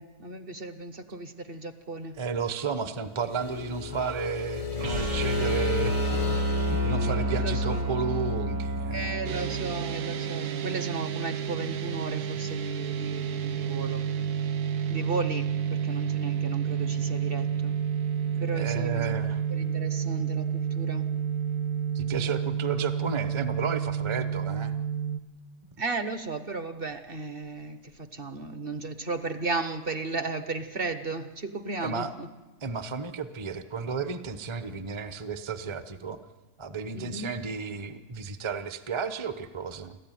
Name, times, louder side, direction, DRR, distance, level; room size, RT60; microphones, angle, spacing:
voice 1, 0.0-2.2 7.0-7.9 8.9-14.1 14.9-17.8 18.4-21.1 25.8-32.3 36.9-37.3, right 3 dB, 40° right, 10 dB, 1.1 m, -35 dB
voice 2, 2.2-9.2 18.5-19.4 21.9-24.7 31.8-32.1 32.6-36.2 36.6-40.0, right 5 dB, 25° right, 10 dB, 0.8 m, -33 dB
sound 1, 3.2-8.7, left 5 dB, 35° left, 0.6 m, -34 dB
sound 2, 4.8-10.9, right 1 dB, 85° right, 3.6 m, -30 dB
sound 3, 9.2-25.2, right 8 dB, 70° right, 1.4 m, -30 dB
28.5 x 13.0 x 9.2 m, 1.2 s
omnidirectional pair, 1.8 m